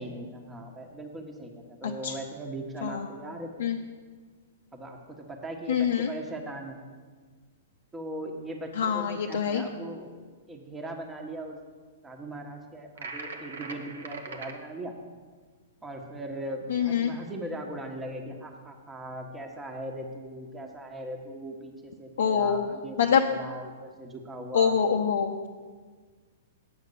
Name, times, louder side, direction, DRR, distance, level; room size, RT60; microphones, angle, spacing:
voice 1, 0.0-3.7 4.7-6.8 7.9-10.2 10.5-11.6 12.0-14.9 15.8-24.8, right 1 dB, 10° right, 2 dB, 1.2 m, -39 dB
voice 2, 5.7-6.1 8.8-9.6 16.7-17.2 22.2-22.7 23.0-23.2 24.5-25.4, left 7 dB, 70° left, 1 dB, 0.6 m, -25 dB
sound 1, 13.0-14.6, right 3 dB, 75° right, 1.1 m, -40 dB
8.7 x 5.8 x 6.8 m, 1.5 s
hypercardioid pair, 120°, 0 cm